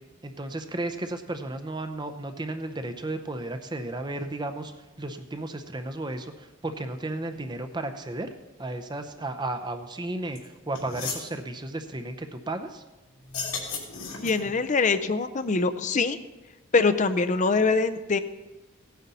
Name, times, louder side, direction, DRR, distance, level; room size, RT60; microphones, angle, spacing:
voice 1, 0.2-4.7 5.0-8.3 8.6-12.8, right 2 dB, 20° right, 7 dB, 0.6 m, -34 dB
sound 1, 10.3-10.4 10.7-11.3 13.2-14.6, left 5 dB, 85° left, 2.9 m, -34 dB
voice 2, 14.2-16.2 16.7-18.2, left 4 dB, 35° left, 11 dB, 0.5 m, -23 dB
17.0 x 9.3 x 4.2 m, 1.1 s
head